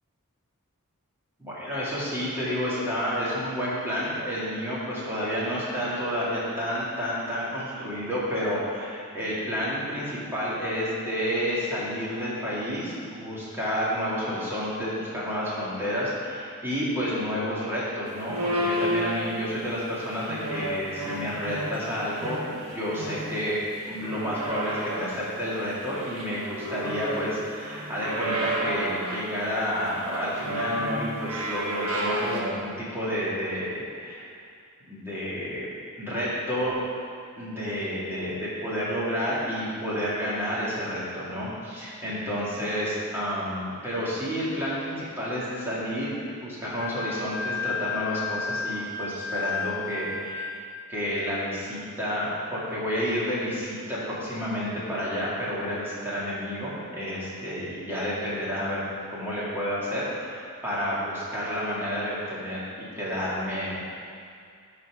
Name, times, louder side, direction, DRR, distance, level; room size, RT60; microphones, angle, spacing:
voice 1, 1.4-23.6 23.9-34.3 34.9-35.7 36.0-36.8 37.4-50.5 50.9-58.8 59.1-63.8, equal, 10° right, -9 dB, 2.3 m, -30 dB
sound 1, 18.3-19.6 20.1-21.9 22.2-23.5 23.8-25.2 25.7-27.3 27.6-29.3 29.9-32.4, right 1 dB, 85° right, 1.4 m, -31 dB
Wind instrument woodwind instrument, 46.8-50.6, left 5 dB, 25° left, 1.5 m, -32 dB
11.5 x 4.4 x 4.9 m, 2.3 s
head